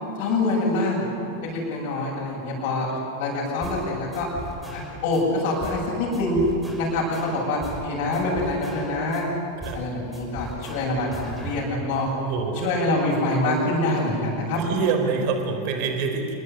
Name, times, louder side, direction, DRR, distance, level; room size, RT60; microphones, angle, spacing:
voice 1, 0.2-1.0 1.4-2.9 3.2-4.3 4.7-6.4 6.8-9.3 9.7-12.1 12.6-14.6, left 2 dB, 45° left, -4 dB, 8.0 m, -25 dB
sound 1, 3.6-3.9 4.1-5.2 5.6-5.9 6.1-7.9 8.1-9.2 9.6-9.9 10.1-11.6, right 2 dB, 5° right, 6.2 m, -38 dB
voice 2, 12.2-12.8 14.6-16.3, right 5 dB, 45° right, 5 dB, 4.3 m, -26 dB
28.5 x 20.5 x 9.6 m, 2.6 s
figure-of-eight pair, 90°, 0 cm